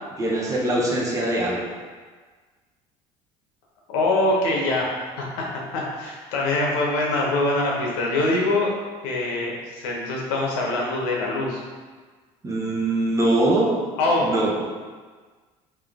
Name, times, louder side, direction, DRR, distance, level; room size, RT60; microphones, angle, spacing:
voice 1, 0.2-1.8 12.4-13.8 14.2-14.6, right 1 dB, 25° right, -3 dB, 0.9 m, -22 dB
voice 2, 3.9-8.7 9.0-11.6 14.0-14.3, left 2 dB, 85° left, -3 dB, 0.9 m, -24 dB
3.6 x 2.7 x 3.6 m, 1.4 s
cardioid pair, 110°, 13 cm